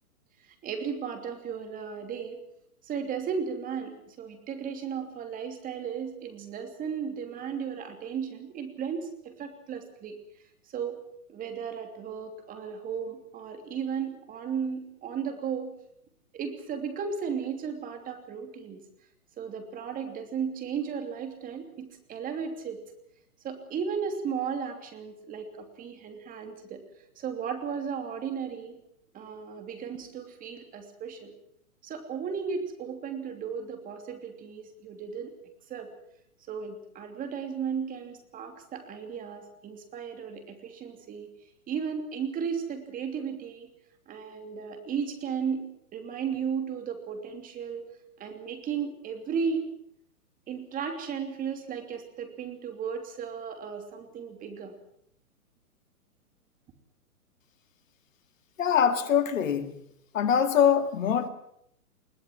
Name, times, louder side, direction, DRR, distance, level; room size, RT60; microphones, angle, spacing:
voice 1, 0.4-2.4 2.8-10.2 10.7-11.0 11.3-15.7 16.3-18.8 19.4-22.8 23.4-26.8 27.2-28.8 29.1-31.3 31.8-35.3 35.7-35.9 36.5-41.3 41.7-43.7 44.1-47.9 48.2-49.6 50.5-54.7, right 6 dB, 20° right, 3.0 m, -35 dB
voice 2, 58.6-59.8 60.1-61.3, left 8 dB, 60° left, 2.2 m, -23 dB
21.5 x 18.5 x 7.5 m
hypercardioid pair, 135°, 44 cm